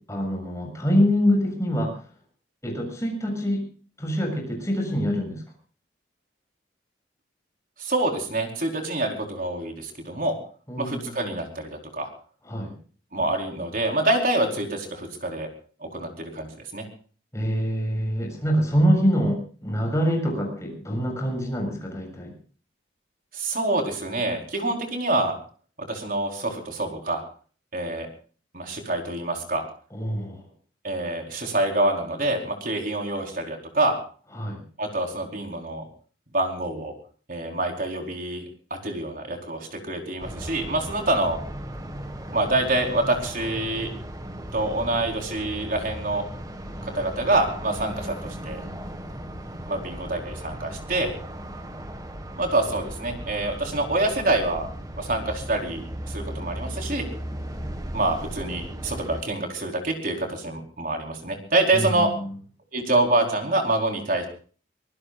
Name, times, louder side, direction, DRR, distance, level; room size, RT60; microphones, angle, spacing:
voice 1, 0.1-2.0 2.6-3.6 4.0-5.4 10.7-11.2 12.4-12.7 17.3-22.3 29.9-30.4 34.3-34.6 61.7-62.3, equal, 15° left, 2 dB, 7.3 m, -25 dB
voice 2, 7.8-10.3 10.8-12.1 13.1-15.5 15.8-16.9 23.3-25.4 25.9-27.2 27.7-28.1 28.5-29.6 30.8-34.0 34.8-35.8 36.3-36.9 37.3-38.4 38.8-41.4 42.3-43.9 44.5-46.2 46.9-48.6 49.7-51.1 52.4-54.7 55.0-57.0 57.9-62.1 62.7-64.3, right 2 dB, 50° right, 2 dB, 4.5 m, -26 dB
sound 1, 40.2-59.2, right 1 dB, 20° right, 1.8 m, -36 dB
24.5 x 19.5 x 2.6 m, 0.41 s
head